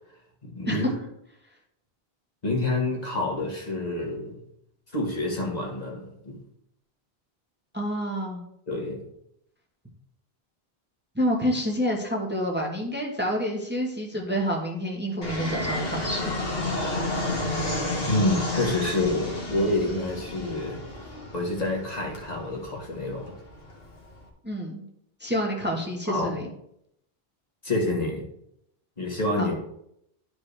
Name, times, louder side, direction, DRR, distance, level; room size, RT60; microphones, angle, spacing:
voice 1, 0.4-0.9 2.4-4.3 4.9-6.4 8.7-9.0 18.1-20.8 21.3-23.3 26.1-26.4 27.6-28.3 29.0-29.6, left 2 dB, 40° left, -1 dB, 1.6 m, -27 dB
voice 2, 7.7-8.4 11.1-16.4 24.4-24.9 25.2-26.5 29.4-29.5, equal, 10° right, -1 dB, 1.2 m, -28 dB
Fixed-wing aircraft airplane, 15.2-24.2, left 2 dB, 70° left, 1.7 m, -32 dB
11.5 x 4.8 x 3.3 m, 0.75 s
omnidirectional pair, 1.0 m